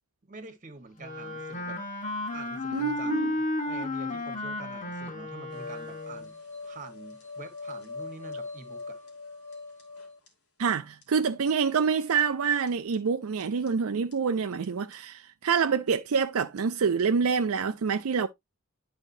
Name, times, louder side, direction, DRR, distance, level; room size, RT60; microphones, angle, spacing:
voice 1, 0.2-1.8 2.3-6.3 6.6-9.0, right 3 dB, 35° right, 1.4 m, -46 dB
Wind instrument woodwind instrument, 1.0-6.3, left 2 dB, 35° left, 1.3 m, -33 dB
voice 2, 2.7-3.3 10.6-18.3, right 6 dB, 70° right, 0.5 m, -26 dB
sound 1, 5.5-10.3 10.7-10.8 11.0-11.1 11.5-11.6 11.7-11.8 12.2-12.3 12.7-13.0 13.4-13.7 14.1-14.2 14.6-14.7 14.9-15.0, left 3 dB, 80° left, 2.7 m, -42 dB
11.0 x 5.1 x 2.6 m
head